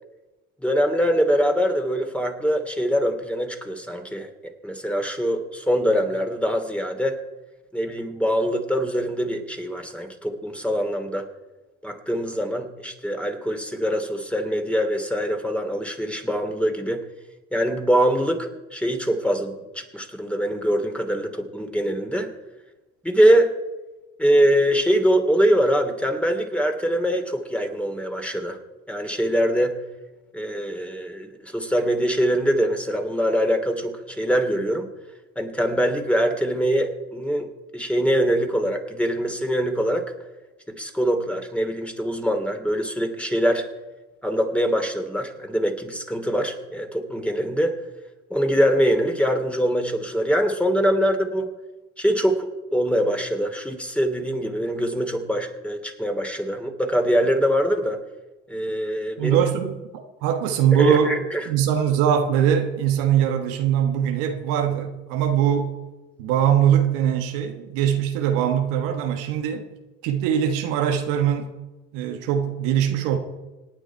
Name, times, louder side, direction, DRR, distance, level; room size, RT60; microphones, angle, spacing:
voice 1, 0.6-4.3 4.6-7.2 7.7-11.3 11.8-17.0 17.5-22.3 23.0-23.5 24.2-28.6 28.9-29.8 30.3-34.9 35.4-40.1 40.8-43.7 44.2-47.8 48.3-51.5 52.0-58.0 58.5-59.4 60.8-61.5, equal, 5° left, 5 dB, 2.9 m, -23 dB
voice 2, 59.2-61.2 61.5-65.7 66.2-69.6 70.0-71.5 71.9-73.2, right 9 dB, 80° right, 4 dB, 1.5 m, -22 dB
27.0 x 9.2 x 4.7 m, 1.1 s
hypercardioid pair, 55°, 33 cm